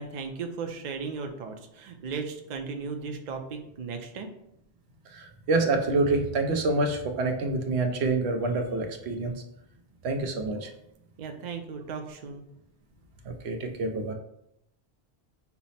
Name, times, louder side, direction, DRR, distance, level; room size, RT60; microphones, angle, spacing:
voice 1, 0.0-4.3 10.5-10.6 11.2-12.4, right 5 dB, 50° right, 5 dB, 0.6 m, -36 dB
voice 2, 5.1-9.3 10.0-10.7 13.2-14.1, right 3 dB, 85° right, 5 dB, 0.9 m, -27 dB
5.6 x 2.0 x 4.0 m, 0.77 s
omnidirectional pair, 1.1 m